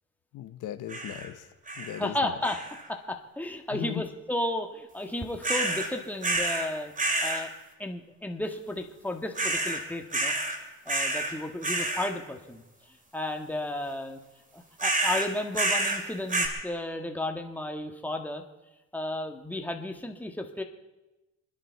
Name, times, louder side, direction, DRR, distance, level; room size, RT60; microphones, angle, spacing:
voice 1, 0.3-1.5 1.8-2.3 3.7-4.1, left 11 dB, 85° left, 9 dB, 1.0 m, -37 dB
sound 1, 0.9-1.3 1.7-2.1 2.4-2.9 5.4-5.9 6.2-6.7 7.0-7.4 9.4-9.8 10.1-10.6 10.9-11.3 11.6-12.1 14.8-16.0 16.3-16.5, right 2 dB, 25° right, 2.7 m, -28 dB
voice 2, 2.0-2.6 2.9-6.9 7.2-7.5 7.8-10.3 10.8-12.6 13.1-14.2 14.5-18.4 18.9-20.6, left 1 dB, 5° left, 3 dB, 1.7 m, -33 dB
27.5 x 10.5 x 4.6 m, 1.0 s
cardioid pair, 90°, 30 cm